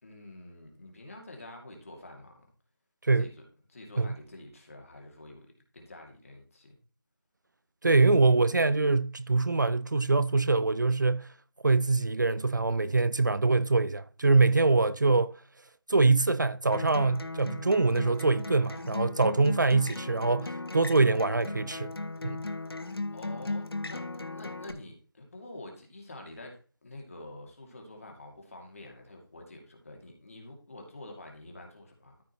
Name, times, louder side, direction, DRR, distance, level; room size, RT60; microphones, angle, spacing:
voice 1, 0.0-2.5 3.1-3.4 3.7-6.8 23.1-32.2, left 2 dB, 35° left, 2.5 m, -47 dB
voice 2, 7.8-11.3 11.6-15.3 15.9-21.9 22.2-22.4, right 3 dB, 50° right, 0.4 m, -24 dB
Acoustic guitar, 16.7-24.7, left 2 dB, 80° left, 1.0 m, -37 dB
13.5 x 5.4 x 3.1 m
figure-of-eight pair, 175°, 13 cm